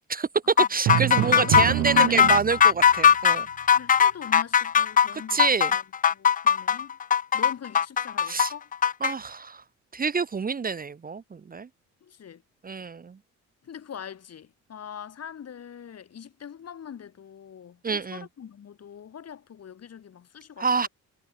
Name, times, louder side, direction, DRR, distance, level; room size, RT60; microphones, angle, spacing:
voice 1, 0.1-3.5 5.1-5.7 8.3-8.5 9.0-9.6 9.9-11.7 12.6-13.2 17.8-18.2 20.6-20.9, right 5 dB, 30° right, 1.0 m, -27 dB
sound 1, 0.6-9.1, left 8 dB, 30° left, 0.4 m, -20 dB
Drum, 0.9-2.9, right 16 dB, 65° right, 0.5 m, -26 dB
voice 2, 1.3-2.3 3.7-5.8 6.1-7.0 7.3-8.7 12.0-12.4 13.6-20.9, left 8 dB, 55° left, 6.3 m, -42 dB
cardioid pair, 90°, 30 cm